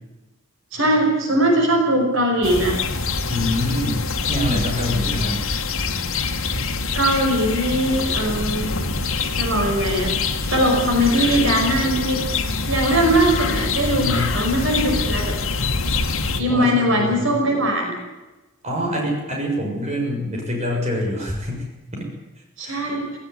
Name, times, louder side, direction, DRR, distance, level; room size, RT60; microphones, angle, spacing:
voice 1, 0.7-2.8 6.9-8.7 9.3-10.1 10.5-12.2 12.7-15.3 16.4-18.0 22.6-23.1, right 1 dB, 65° right, 2 dB, 5.4 m, -20 dB
sound 1, 2.4-16.4, left 4 dB, 80° left, 2.2 m, -25 dB
voice 2, 3.3-4.0 4.3-5.4 13.9-14.3 16.5-17.3 18.6-21.6 21.9-22.1 22.6-22.8, left 1 dB, 30° right, -1 dB, 6.6 m, -25 dB
18.5 x 18.0 x 9.6 m, 1.1 s
head